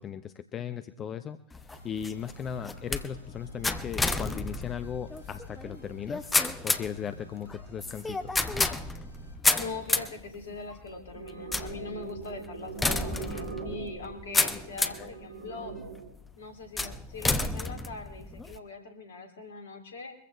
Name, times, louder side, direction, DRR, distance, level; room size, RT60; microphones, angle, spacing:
voice 1, 0.0-6.3 6.6-8.4 15.0-15.1, left 8 dB, 25° left, 11 dB, 0.7 m, -37 dB
sound 1, 1.5-15.1 15.7-16.1 16.8-18.6, left 3 dB, 10° left, 1.0 m, -31 dB
sound 2, 1.7-9.3, left 1 dB, 80° left, 5.5 m, -49 dB
voice 2, 9.5-15.7 16.4-20.1, left 4 dB, 65° left, 5 dB, 3.0 m, -42 dB
sound 3, 11.1-16.1, right 5 dB, 65° right, 2.2 m, -41 dB
23.5 x 15.0 x 3.4 m, 0.73 s
figure-of-eight pair, 90°, 0 cm